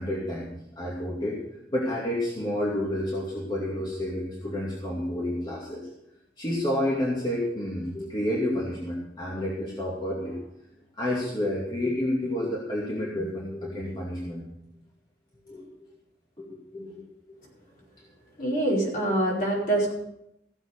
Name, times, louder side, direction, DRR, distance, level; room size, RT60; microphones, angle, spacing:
voice 1, 0.0-1.4 1.7-5.9 6.4-10.4 11.0-14.5 15.5-15.8 16.4-16.5 16.7-17.0 18.9-19.0, left 1 dB, 25° left, -5 dB, 2.5 m, -30 dB
voice 2, 18.4-19.9, right 1 dB, 50° left, -4 dB, 4.9 m, -25 dB
16.0 x 7.8 x 6.7 m, 0.80 s
head